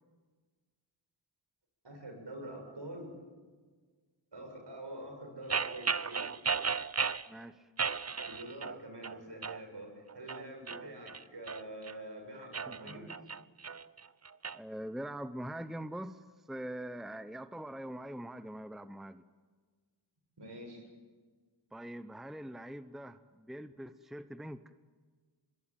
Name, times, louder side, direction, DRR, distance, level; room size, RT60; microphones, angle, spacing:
voice 1, 1.8-3.1 4.3-6.3 8.2-13.2 20.4-20.9, right 1 dB, 60° right, 4 dB, 7.3 m, -46 dB
sound 1, 5.5-7.3 7.8-8.8 9.0-9.6 10.1-11.9 12.4-14.6, right 5 dB, 35° right, 0.7 m, -35 dB
voice 2, 7.3-7.7 12.4-13.1 14.5-19.2 21.7-24.6, right 1 dB, ahead, 11 dB, 0.9 m, -43 dB
25.0 x 21.5 x 9.2 m, 1.5 s
cardioid pair, 50°, 46 cm